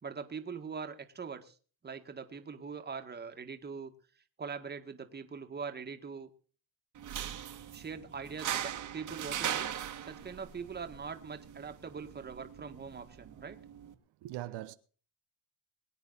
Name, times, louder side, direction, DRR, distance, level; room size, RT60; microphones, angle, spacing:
voice 1, 0.0-1.6 1.8-3.9 4.4-6.3 7.7-9.7 10.0-13.6, right 5 dB, 25° right, 1.9 m, -42 dB
sound 1, 7.0-13.9, right 10 dB, 50° right, 1.8 m, -40 dB
voice 2, 14.2-14.7, right 16 dB, 85° right, 1.0 m, -42 dB
22.5 x 9.3 x 4.1 m
cardioid pair, 130°, 39 cm